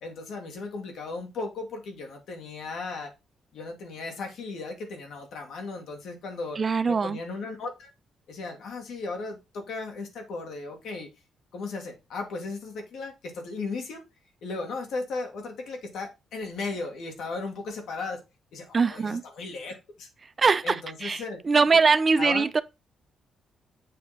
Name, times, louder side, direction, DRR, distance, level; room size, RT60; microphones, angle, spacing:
voice 1, 0.0-3.1 3.5-7.9 8.3-11.1 11.5-14.0 14.4-18.2 18.5-20.1 20.6-21.4 22.2-22.5, left 3 dB, 80° left, 1.9 m, -36 dB
voice 2, 6.6-7.2 18.7-19.2 20.4-22.6, right 4 dB, 35° right, 0.5 m, -22 dB
7.6 x 2.9 x 5.6 m
cardioid pair, 100°, 0 cm